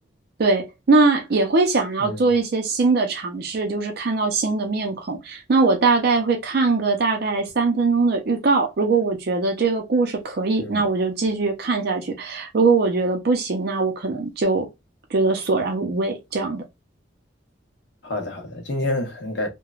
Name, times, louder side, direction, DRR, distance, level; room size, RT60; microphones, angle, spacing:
voice 1, 0.4-14.7 15.1-16.6, right 3 dB, 55° right, 0.4 m, -21 dB
voice 2, 18.0-19.5, left 1 dB, 65° left, 0.7 m, -28 dB
3.0 x 2.1 x 2.3 m
head